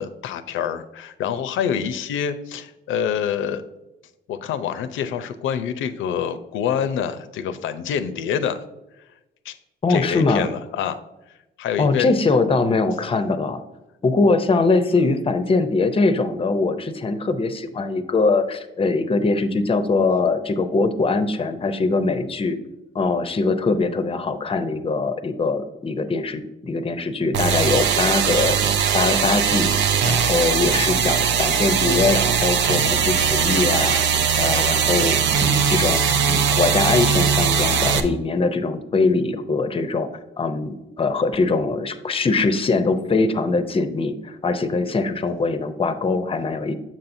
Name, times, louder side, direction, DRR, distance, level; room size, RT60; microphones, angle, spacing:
voice 1, 0.0-3.6 4.3-8.6 9.5-9.6 9.9-11.0 11.6-12.1, left 8 dB, 80° left, 11 dB, 0.5 m, -26 dB
voice 2, 9.8-10.5 11.8-13.6 14.0-22.6 22.9-28.6 28.9-29.7 30.0-40.1 40.4-46.7, left 3 dB, 30° left, 10 dB, 0.6 m, -22 dB
sound 1, 27.3-38.0, right 7 dB, 65° right, 0.6 m, -20 dB
7.4 x 5.7 x 2.6 m, 0.98 s
cardioid pair, 90°, 20 cm